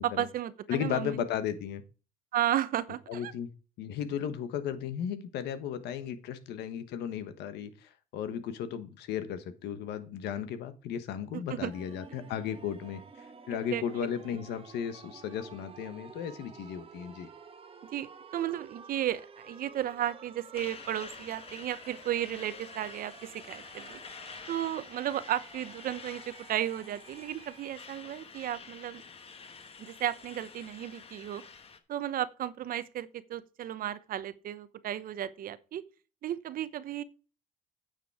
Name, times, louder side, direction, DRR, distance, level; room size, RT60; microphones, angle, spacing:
voice 1, 0.0-1.2 2.3-3.3 11.3-11.7 13.5-14.1 17.9-24.0 24.5-29.0 29.8-31.4 31.9-35.8 36.2-37.0, right 11 dB, 60° right, 0.8 m, -34 dB
voice 2, 0.7-1.8 3.1-3.5 3.8-17.3, left 9 dB, 80° left, 1.3 m, -35 dB
sound 1, 11.7-27.7, right 5 dB, 35° right, 1.3 m, -52 dB
Truck, 20.5-31.8, left 5 dB, 35° left, 1.3 m, -48 dB
9.2 x 6.8 x 4.8 m
cardioid pair, 110°, 17 cm